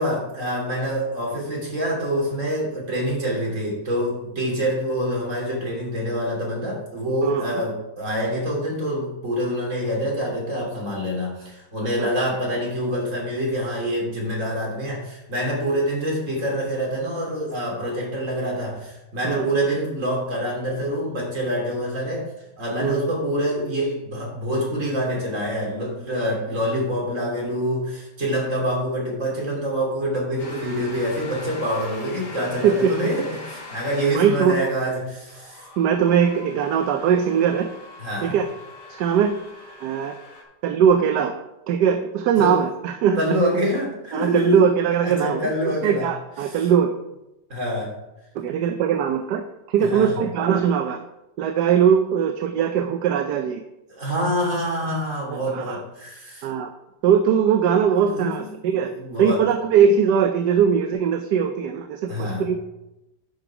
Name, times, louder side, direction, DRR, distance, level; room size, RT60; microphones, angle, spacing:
voice 1, 0.0-22.3 22.6-35.6 38.0-38.4 42.4-42.6 43.2-44.8 45.0-46.1 46.4-46.6 47.5-48.0 49.8-50.2 53.9-56.5 57.9-58.5 58.9-59.5 62.1-62.5, equal, 45° right, -3 dB, 3.2 m, -26 dB
voice 2, 7.2-7.6 12.0-12.1 19.2-19.5 22.8-23.0 32.6-32.9 34.1-34.6 35.8-37.7 38.2-38.5 38.9-39.4 39.8-40.2 40.6-41.3 41.7-43.2 44.1-45.4 45.8-46.9 48.3-51.0 51.4-53.6 55.3-55.8 56.4-56.7 57.0-58.9 59.2-62.6, right 7 dB, 75° right, 7 dB, 1.2 m, -20 dB
sound 1, 30.4-40.4, left 2 dB, 75° left, 2.5 m, -41 dB
11.0 x 5.3 x 4.7 m, 0.92 s
omnidirectional pair, 1.8 m